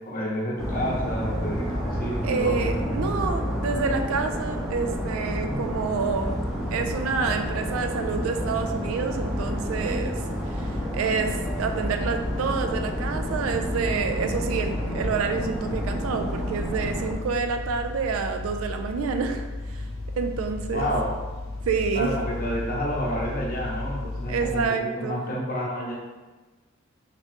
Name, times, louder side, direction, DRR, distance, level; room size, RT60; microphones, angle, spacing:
voice 1, 0.0-3.1 5.5-6.0 20.7-21.1 21.9-25.9, equal, 45° left, -4 dB, 0.8 m, -30 dB
sound 1, 0.6-17.1, equal, ahead, 0.5 m, -30 dB
voice 2, 2.2-6.4 6.7-10.2 10.5-19.9 20.2-20.9 21.7-22.1 24.3-25.2, right 5 dB, 75° right, 6 dB, 0.3 m, -28 dB
sound 2, 6.1-24.7, left 2 dB, 80° left, 0.5 m, -36 dB
3.0 x 2.9 x 3.2 m, 1.3 s
head